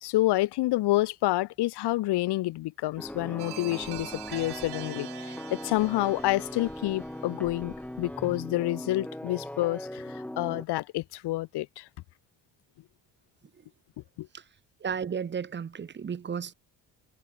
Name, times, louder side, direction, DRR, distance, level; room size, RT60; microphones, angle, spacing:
voice 1, 0.0-11.9 14.2-14.3, left 17 dB, 80° left, 1.4 m, -28 dB
sound 1, 3.0-10.6, left 1 dB, 5° left, 4.4 m, -39 dB
sound 2, 3.4-8.1, right 16 dB, 75° right, 3.2 m, -45 dB
voice 2, 14.8-16.5, right 7 dB, 25° right, 2.0 m, -33 dB
cardioid pair, 175°, 39 cm